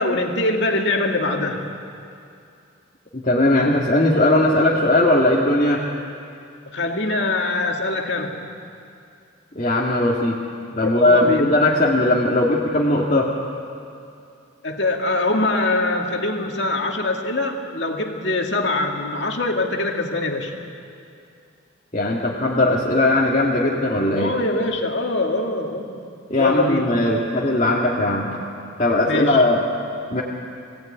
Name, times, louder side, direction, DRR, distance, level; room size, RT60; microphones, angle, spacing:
voice 1, 0.0-1.7 6.7-8.4 11.0-11.5 14.6-20.5 24.2-26.0 26.4-26.9 29.0-29.4, left 2 dB, 60° left, 2 dB, 2.3 m, -23 dB
voice 2, 3.1-5.8 9.6-10.4 10.7-13.3 21.9-24.3 26.3-28.3 28.8-29.6 30.1-30.2, left 1 dB, 35° left, -5 dB, 2.0 m, -18 dB
24.5 x 17.5 x 9.2 m, 2.5 s
head